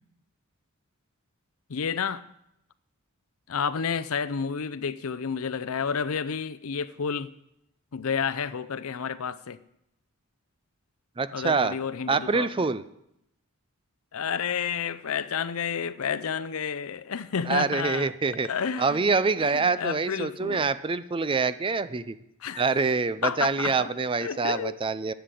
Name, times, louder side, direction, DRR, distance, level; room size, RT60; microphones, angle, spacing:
voice 1, 1.7-2.2 3.5-7.3 7.9-9.6 11.3-12.7 14.1-18.1 18.4-19.0 19.4-20.7 22.4-22.7 23.2-23.9 24.2-24.8, left 6 dB, 65° left, 0.6 m, -30 dB
voice 2, 11.2-11.8 12.1-12.8 17.5-18.5 18.8-22.2 22.6-25.1, right 4 dB, 25° right, 0.4 m, -25 dB
11.5 x 7.9 x 8.3 m
head